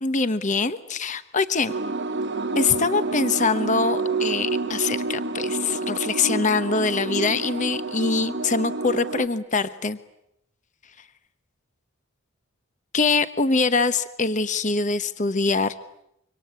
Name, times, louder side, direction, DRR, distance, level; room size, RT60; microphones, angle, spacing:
voice 1, 0.0-1.7 2.5-10.0 12.9-15.7, left 4 dB, 35° left, 12 dB, 1.0 m, -23 dB
sound 1, 1.7-9.3, right 3 dB, 55° right, 1.2 m, -28 dB
sound 2, 2.2-7.6, right 1 dB, 75° right, 1.7 m, -43 dB
26.0 x 24.5 x 8.3 m, 0.79 s
head